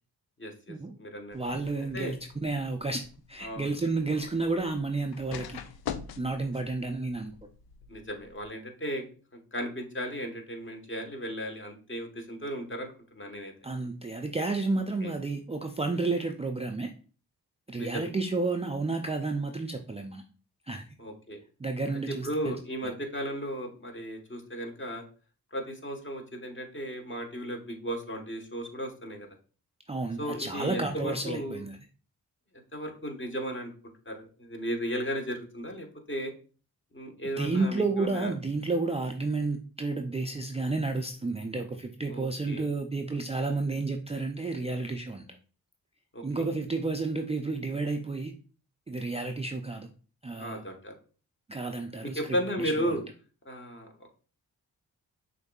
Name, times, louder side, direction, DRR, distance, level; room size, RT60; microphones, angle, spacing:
voice 1, 0.4-1.4 1.9-2.1 3.4-3.7 4.2-4.3 7.9-9.0 9.3-13.5 15.0-15.1 17.8-18.1 21.0-21.4 22.1-25.0 25.5-29.3 30.2-31.6 32.7-33.7 34.0-36.3 36.9-38.3 42.1-42.7 46.1-46.2 50.4-50.9 52.0-53.0 53.4-53.9, equal, 30° left, 3 dB, 1.3 m, -35 dB
sound 1, 1.3-8.5, left 8 dB, 65° left, 0.5 m, -45 dB
voice 2, 1.3-3.0 3.3-5.6 6.2-7.3 13.6-16.9 17.7-20.2 20.6-20.8 21.6-22.6 29.9-31.8 37.4-45.2 46.2-48.3 48.9-49.9 50.2-50.6 51.5-52.9, right 3 dB, 15° right, 4 dB, 0.4 m, -31 dB
6.2 x 2.6 x 2.3 m, 0.38 s
supercardioid pair, 40°, 40 cm